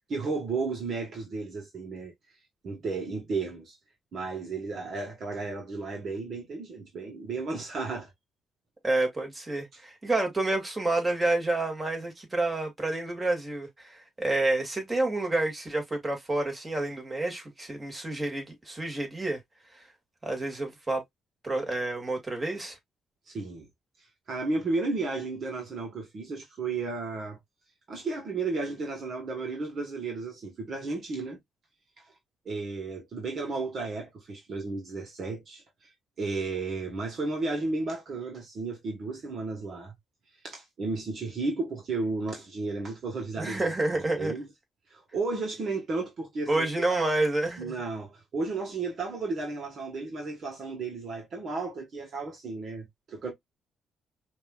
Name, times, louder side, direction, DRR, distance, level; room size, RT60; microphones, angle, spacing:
voice 1, 0.1-2.1 2.6-3.8 4.1-8.1 23.3-23.7 24.0-27.4 27.9-31.4 32.4-35.9 36.2-39.9 40.4-44.5 44.9-46.7 47.6-53.3, right 3 dB, 55° right, 1.6 m, -33 dB
voice 2, 8.8-19.4 19.7-19.8 20.2-21.0 21.4-22.8 43.4-44.3 46.5-47.7, right 2 dB, 20° right, 2.3 m, -29 dB
5.3 x 2.9 x 2.4 m
cardioid pair, 90°, 0 cm